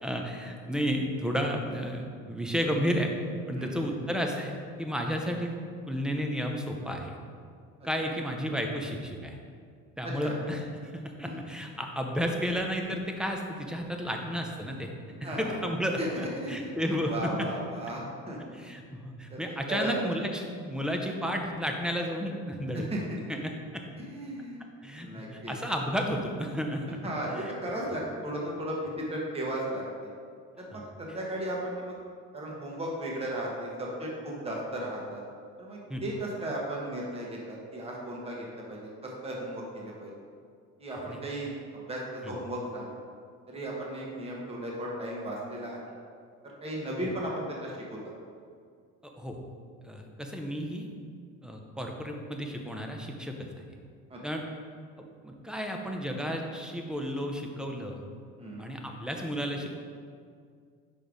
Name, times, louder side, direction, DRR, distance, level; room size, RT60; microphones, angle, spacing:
voice 1, 0.0-3.1 3.5-5.6 5.9-7.1 7.8-9.4 10.0-10.9 11.2-14.9 15.2-17.5 18.5-22.8 23.3-23.8 24.8-27.1 30.7-30.8 35.9-36.0 41.1-41.2 42.2-42.4 47.0-47.1 49.2-49.4 49.8-50.9 51.4-53.5 54.2-54.4 55.2-58.0 58.6-59.7, equal, ahead, 2 dB, 0.6 m, -32 dB
voice 2, 15.2-15.6 16.0-18.7 19.3-19.4 19.7-19.9 22.9-23.0 24.0-24.6 25.0-25.5 27.0-30.1 30.6-31.9 32.3-35.2 35.6-40.1 40.8-42.9 43.5-45.8 46.4-48.0 54.1-54.2 58.4-58.6, right 1 dB, 20° right, -3 dB, 1.2 m, -36 dB
5.3 x 4.5 x 5.0 m, 2.1 s
cardioid pair, 135°, 31 cm